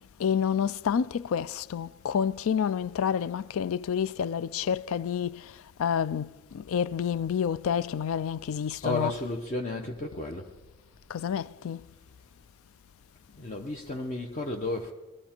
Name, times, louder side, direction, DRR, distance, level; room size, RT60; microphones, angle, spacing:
voice 1, 0.2-5.5 5.8-9.1 11.1-11.8, left 7 dB, 65° left, 0.4 m, -29 dB
voice 2, 8.8-10.5 13.3-14.9, left 2 dB, 35° left, 0.8 m, -32 dB
20.0 x 13.0 x 4.4 m
head